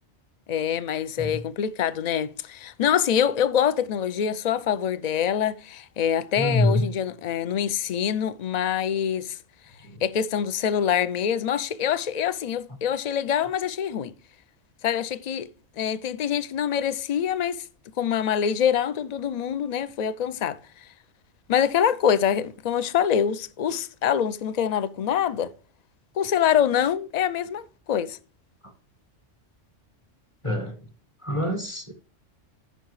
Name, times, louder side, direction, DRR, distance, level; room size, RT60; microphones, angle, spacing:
voice 1, 0.5-9.4 10.0-14.1 14.8-15.5 15.8-17.6 18.0-20.6 21.5-25.5 26.2-28.2, left 8 dB, 55° left, 0.4 m, -25 dB
voice 2, 6.4-6.8 9.9-10.0 30.4-30.7 31.2-31.9, left 1 dB, 25° left, 1.4 m, -25 dB
14.0 x 5.7 x 3.1 m
omnidirectional pair, 1.3 m